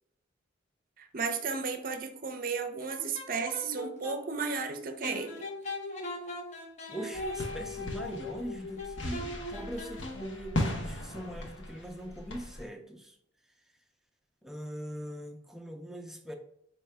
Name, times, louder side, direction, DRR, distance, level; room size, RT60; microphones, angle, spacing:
voice 1, 1.0-5.4, right 5 dB, 45° right, 7 dB, 0.6 m, -34 dB
sound 1, 2.8-4.2 5.0-10.5, left 2 dB, 40° left, 0.7 m, -40 dB
voice 2, 6.9-13.2 14.4-16.3, equal, ahead, 3 dB, 0.5 m, -41 dB
sound 2, 7.1-12.6, left 1 dB, 70° left, 0.9 m, -38 dB
4.6 x 2.8 x 3.2 m, 0.74 s
head